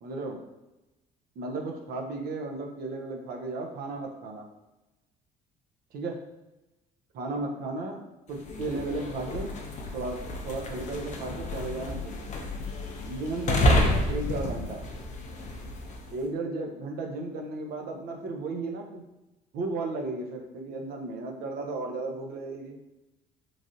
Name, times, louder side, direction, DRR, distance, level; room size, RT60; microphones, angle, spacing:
voice 1, 0.0-0.4 1.4-4.5 5.9-6.2 7.1-8.0 8.3-9.5 9.9-10.2 10.4-12.2 13.0-14.8 16.1-19.0 19.5-22.8, right 3 dB, 65° right, 2 dB, 0.6 m, -34 dB
sound 1, 8.3-16.1, left 1 dB, 45° left, 0.5 m, -30 dB
3.1 x 2.4 x 2.6 m, 1.0 s
cardioid pair, 110°, 17 cm